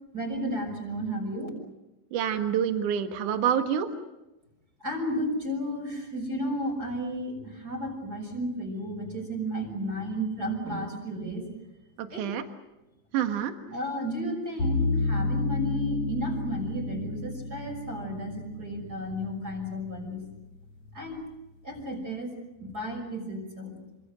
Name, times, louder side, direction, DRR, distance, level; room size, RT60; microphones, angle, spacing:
voice 1, 0.1-1.5 4.8-11.5 12.1-12.3 13.7-20.2 20.9-21.2 21.6-23.8, equal, 25° right, 2 dB, 6.4 m, -33 dB
voice 2, 2.1-3.9 12.0-12.4 13.1-13.5, right 9 dB, 65° right, 6 dB, 3.0 m, -27 dB
sound 1, 14.6-19.7, left 3 dB, 45° left, 5.6 m, -31 dB
27.5 x 26.0 x 6.4 m, 0.99 s
omnidirectional pair, 4.1 m